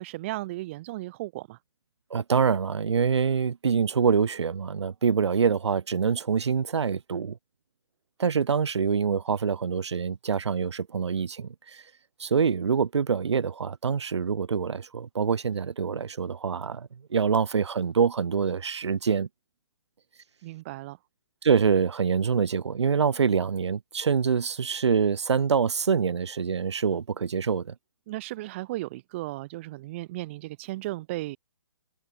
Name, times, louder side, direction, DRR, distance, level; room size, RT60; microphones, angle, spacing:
voice 1, 0.0-1.6 20.4-21.0 28.1-31.4, right 18 dB, 25° right, 0.9 m, -35 dB
voice 2, 2.1-7.4 8.2-11.5 12.2-19.3 21.4-27.7, right 6 dB, 75° right, 2.0 m, -25 dB
hypercardioid pair, 160°, 14 cm